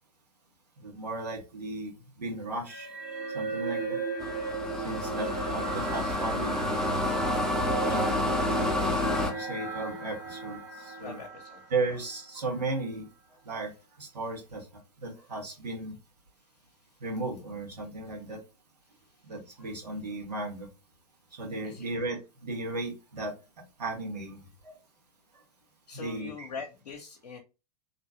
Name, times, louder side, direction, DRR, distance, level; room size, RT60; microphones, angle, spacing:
voice 1, 0.8-2.9 3.3-4.0 4.7-6.6 7.8-8.1 8.5-11.2 11.7-13.1 13.4-13.7 14.0-14.7 15.0-16.0 17.0-18.4 19.2-20.7 21.3-23.3 23.8-24.8 25.3-25.4 25.9-26.5, right 2 dB, 75° right, -2 dB, 1.5 m, -35 dB
sound 1, 2.7-12.2, right 4 dB, 50° right, 1.7 m, -36 dB
sound 2, 4.2-9.3, left 1 dB, 5° left, 0.6 m, -29 dB
voice 2, 11.0-11.6 21.6-21.9 25.9-27.4, left 5 dB, 75° left, 2 dB, 0.6 m, -42 dB
2.9 x 2.6 x 2.7 m, 0.28 s
figure-of-eight pair, 90°, 21 cm